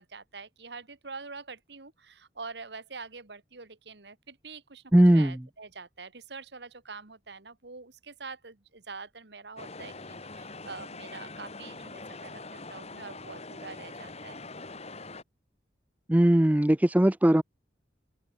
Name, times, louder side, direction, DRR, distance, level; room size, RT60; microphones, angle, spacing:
voice 1, 0.0-4.8 5.1-14.4, right 4 dB, 65° right, 1.7 m, -45 dB
voice 2, 4.9-5.4 16.1-17.4, right 1 dB, 10° right, 0.4 m, -20 dB
sound 1, 9.6-15.2, left 3 dB, 35° left, 3.8 m, -43 dB
head